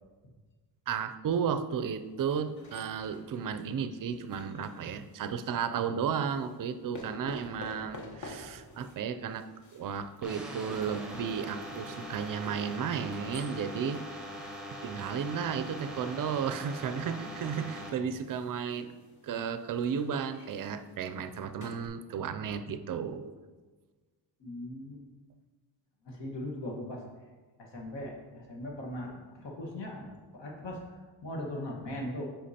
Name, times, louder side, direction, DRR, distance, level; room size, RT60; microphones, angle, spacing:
voice 1, 0.9-14.0 14.8-18.9 19.2-23.3, right 7 dB, 50° right, 10 dB, 0.4 m, -33 dB
sound 1, 2.2-5.4 6.1-21.9, left 1 dB, 40° left, 1.1 m, -50 dB
sound 2, 10.2-17.9, equal, ahead, 1.0 m, -42 dB
voice 2, 24.4-25.0 26.0-27.0 27.6-30.8 31.2-32.2, left 1 dB, 70° left, -1 dB, 1.5 m, -39 dB
8.2 x 5.7 x 2.8 m, 1.3 s
cardioid pair, 130°, 44 cm